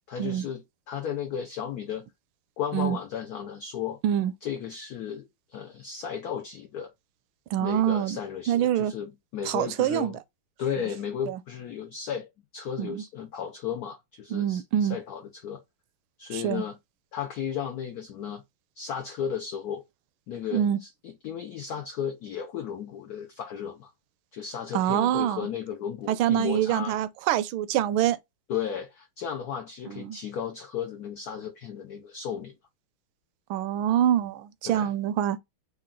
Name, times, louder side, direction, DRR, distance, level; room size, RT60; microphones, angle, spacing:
voice 1, 0.1-2.1 2.6-4.0 4.4-6.9 7.6-10.2 10.6-15.6 16.2-16.8 17.1-18.4 18.8-19.8 20.3-23.9 24.3-27.0 28.5-32.5 34.6-34.9, left 8 dB, 90° left, 0.8 m, -34 dB
voice 2, 7.5-8.2 8.5-8.9 9.4-10.2 11.3-11.4 12.8-13.0 14.3-15.0 16.3-16.6 20.5-20.8 24.7-25.5 26.1-28.2 29.9-30.2 33.5-35.4, right 11 dB, 75° right, 1.3 m, -25 dB
4.8 x 2.4 x 3.6 m
omnidirectional pair, 2.4 m